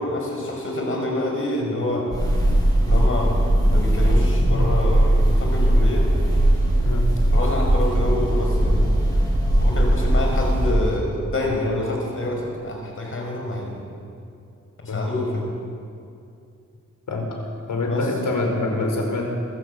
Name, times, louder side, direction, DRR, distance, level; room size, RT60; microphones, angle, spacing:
voice 1, 0.0-2.2 2.9-3.4 3.7-6.1 7.3-8.9 9.6-13.8 14.8-15.5 17.8-18.1, left 1 dB, 45° left, 1 dB, 5.5 m, -27 dB
sound 1, 2.1-10.7, right 1 dB, 10° left, 6.7 m, -19 dB
voice 2, 17.7-19.2, left 2 dB, 80° left, 1 dB, 4.8 m, -25 dB
27.0 x 13.0 x 8.2 m, 2.5 s
wide cardioid pair, 145°, 31 cm